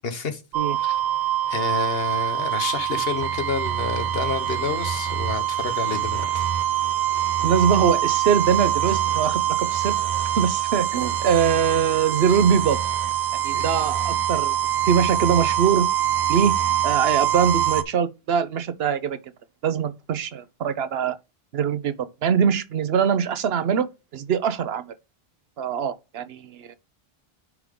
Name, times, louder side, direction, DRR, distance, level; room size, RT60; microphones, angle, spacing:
voice 1, 0.0-0.4 0.8-1.0 1.5-6.5 13.5-13.7, left 5 dB, 70° left, 1.4 m, -29 dB
sound 1, 0.5-17.8, right 11 dB, 50° right, 0.6 m, -24 dB
voice 2, 7.4-9.9 10.4-12.8 13.4-14.6 14.9-15.9 16.3-16.6 16.8-19.2 19.6-21.1 21.5-21.9 22.2-23.9 24.1-24.9 25.6-26.7, right 7 dB, 75° right, 1.0 m, -22 dB
9.4 x 3.5 x 3.8 m
omnidirectional pair, 1.0 m